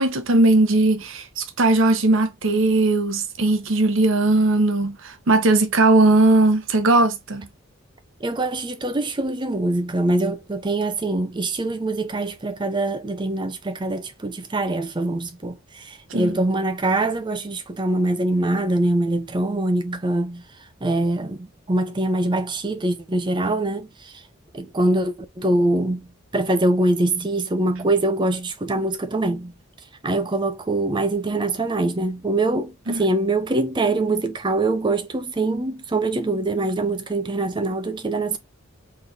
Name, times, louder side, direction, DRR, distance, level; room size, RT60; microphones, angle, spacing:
voice 1, 0.0-7.5 16.1-16.4 32.9-33.0, right 2 dB, 65° right, 0.8 m, -18 dB
voice 2, 8.2-20.4 20.8-24.2 24.5-26.0 26.3-29.5 30.0-38.4, right 2 dB, 20° right, 0.5 m, -23 dB
3.9 x 3.3 x 2.7 m
head